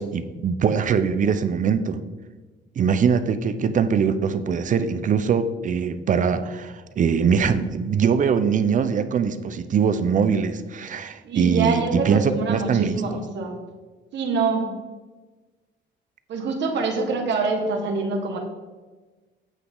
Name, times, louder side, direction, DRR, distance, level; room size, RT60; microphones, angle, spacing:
voice 1, 0.0-2.0 2.8-13.0, right 6 dB, 40° right, 11 dB, 0.6 m, -22 dB
voice 2, 11.2-13.6 14.1-14.7 16.3-18.4, right 4 dB, 65° right, 2 dB, 1.6 m, -25 dB
9.0 x 8.2 x 3.9 m, 1.3 s
cardioid pair, 165°, 20 cm